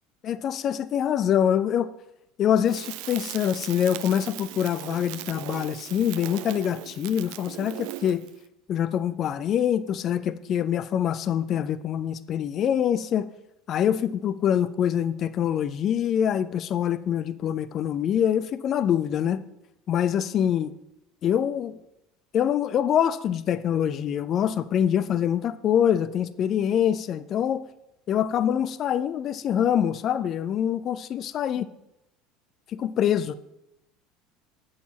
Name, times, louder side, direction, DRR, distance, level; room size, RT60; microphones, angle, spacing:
voice 1, 0.2-1.9 2.4-8.3 8.7-13.3 13.7-19.4 19.9-20.7 21.2-21.8 22.3-27.6 28.1-31.7 32.7-33.3, left 9 dB, 40° left, 0.4 m, -25 dB
Crackle, 2.6-8.3, right 16 dB, 55° right, 0.3 m, -38 dB
8.3 x 6.4 x 4.0 m
figure-of-eight pair, 70°, 0 cm